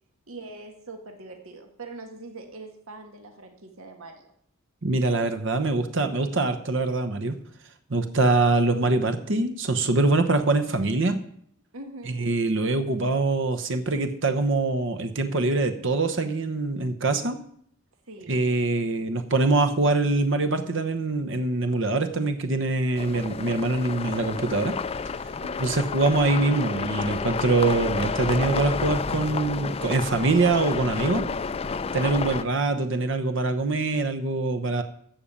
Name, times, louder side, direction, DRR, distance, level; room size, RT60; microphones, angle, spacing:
voice 1, 0.3-4.3 11.7-12.3 18.1-18.5 25.4-25.8, right 2 dB, 80° right, 4 dB, 1.8 m, -42 dB
voice 2, 4.8-7.4 7.9-11.2 12.1-17.4 18.3-24.7 25.6-31.3 31.9-34.8, right 3 dB, 60° right, 9 dB, 1.0 m, -24 dB
sound 1, 22.9-32.4, left 5 dB, 30° left, 0.4 m, -30 dB
14.5 x 5.3 x 8.6 m, 0.65 s
head